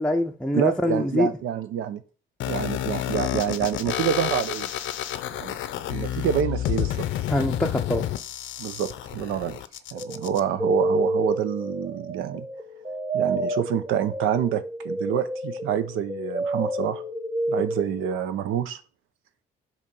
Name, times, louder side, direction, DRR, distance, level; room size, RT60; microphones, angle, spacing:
voice 1, 0.0-1.3 7.3-8.0, left 1 dB, 5° left, 0.5 m, -24 dB
voice 2, 0.5-2.0 2.5-4.7 5.3-5.6 5.9-7.1 8.6-9.6 9.9-12.5 13.1-17.0 17.5-18.8, right 9 dB, 90° right, 0.7 m, -27 dB
sound 1, 2.4-10.4, left 12 dB, 75° left, 0.6 m, -30 dB
sound 2, 9.9-18.2, right 1 dB, 15° right, 0.9 m, -29 dB
8.3 x 2.9 x 5.2 m
cardioid pair, 90°, 20 cm